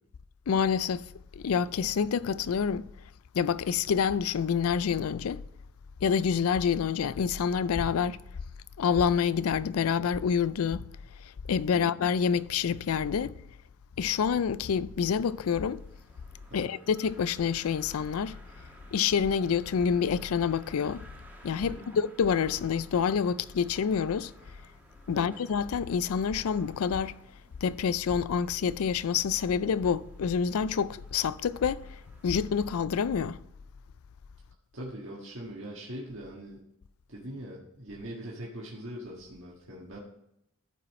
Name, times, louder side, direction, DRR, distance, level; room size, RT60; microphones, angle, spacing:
voice 1, 0.5-1.0 1.4-2.8 3.3-5.4 6.0-8.2 8.8-10.9 11.5-13.4 14.0-15.8 16.5-18.4 18.9-21.0 21.4-24.3 25.1-27.1 27.6-31.8 32.2-33.4, left 6 dB, 90° left, 0.4 m, -27 dB
voice 2, 11.7-12.0 16.5-16.7 21.6-22.0 25.1-25.4 34.7-36.6 37.1-40.0, right 1 dB, 65° right, 1.7 m, -42 dB
sound 1, 15.0-32.8, right 1 dB, 10° right, 1.5 m, -55 dB
13.0 x 5.5 x 4.2 m
head